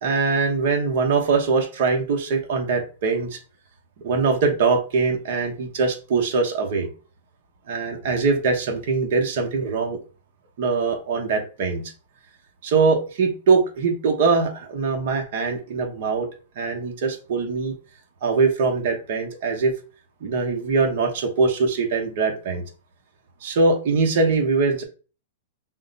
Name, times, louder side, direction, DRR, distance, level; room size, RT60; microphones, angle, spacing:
voice 1, 0.0-3.4 4.0-6.9 7.7-10.0 10.6-11.8 12.6-16.3 16.6-17.7 18.2-19.7 20.2-22.6 23.4-24.8, right 4 dB, 50° right, 2 dB, 1.1 m, -22 dB
5.6 x 2.2 x 4.0 m, 0.35 s
supercardioid pair, 170°, 0 cm